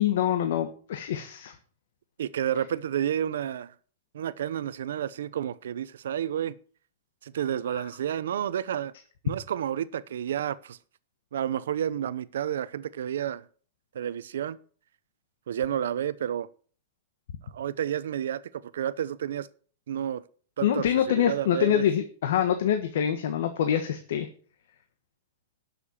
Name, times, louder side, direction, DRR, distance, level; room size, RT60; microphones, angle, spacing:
voice 1, 0.0-1.5 20.6-24.3, left 10 dB, 60° left, 1.3 m, -25 dB
voice 2, 2.2-3.7 4.1-6.5 7.2-8.9 9.2-10.8 11.3-13.4 13.9-14.6 15.5-16.5 17.5-18.4 18.7-19.5 19.9-20.2 20.6-21.8, right 10 dB, 80° right, 0.7 m, -30 dB
11.5 x 6.8 x 7.2 m
supercardioid pair, 175°, 0 cm